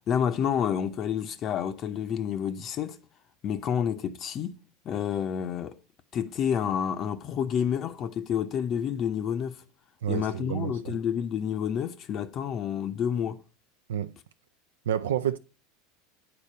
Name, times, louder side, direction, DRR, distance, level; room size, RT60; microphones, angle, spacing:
voice 1, 0.0-3.0 3.4-4.6 4.8-5.8 6.1-9.6 10.1-13.4, left 8 dB, 40° left, 0.6 m, -29 dB
voice 2, 10.0-11.0 13.9-14.1 14.9-15.4, right 10 dB, 70° right, 0.3 m, -29 dB
8.7 x 4.3 x 5.4 m
figure-of-eight pair, 80°, 0 cm